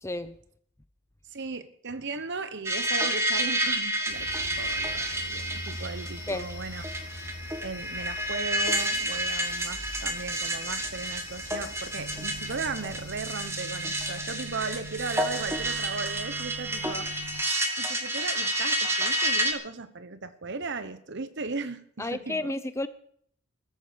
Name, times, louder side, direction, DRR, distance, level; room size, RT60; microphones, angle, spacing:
voice 1, 0.0-0.4 6.3-6.4 22.0-22.9, left 2 dB, 10° left, 13 dB, 0.5 m, -31 dB
voice 2, 1.3-6.8 7.6-17.1 17.8-22.5, right 4 dB, 55° right, 12 dB, 1.1 m, -37 dB
sound 1, 2.7-19.5, right 1 dB, 10° right, 1.6 m, -30 dB
sound 2, 4.1-13.2, left 2 dB, 80° left, 3.3 m, -43 dB
sound 3, 11.9-17.4, right 2 dB, 85° right, 1.3 m, -43 dB
16.0 x 14.0 x 5.3 m, 0.65 s
head